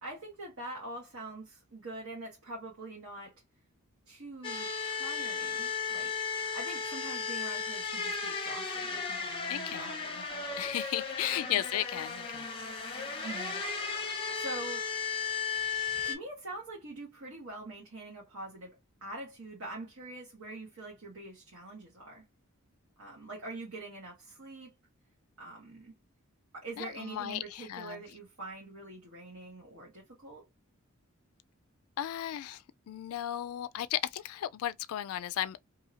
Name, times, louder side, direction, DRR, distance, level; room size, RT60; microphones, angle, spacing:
voice 1, 0.0-3.3 4.1-10.6 11.2-11.6 13.2-13.6 14.3-14.9 16.0-22.2 23.0-24.7 25.4-25.9 26.5-30.5, right 2 dB, 65° right, 1.2 m, -44 dB
sound 1, 4.4-16.2, left 5 dB, 25° left, 0.7 m, -35 dB
voice 2, 9.5-9.9 10.6-12.5 26.8-28.0 32.0-35.6, left 12 dB, 75° left, 0.3 m, -35 dB
2.8 x 2.7 x 2.7 m
head